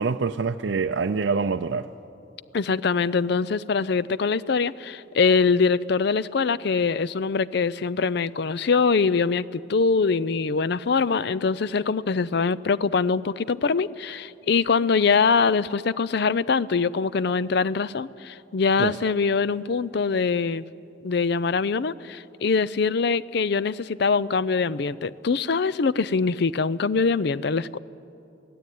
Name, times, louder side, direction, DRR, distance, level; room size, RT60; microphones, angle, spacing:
voice 1, 0.0-1.9 18.8-19.0, right 4 dB, 70° right, 0.5 m, -25 dB
voice 2, 2.5-20.6 21.0-27.8, left 5 dB, 60° left, 0.5 m, -23 dB
22.5 x 16.0 x 9.3 m
head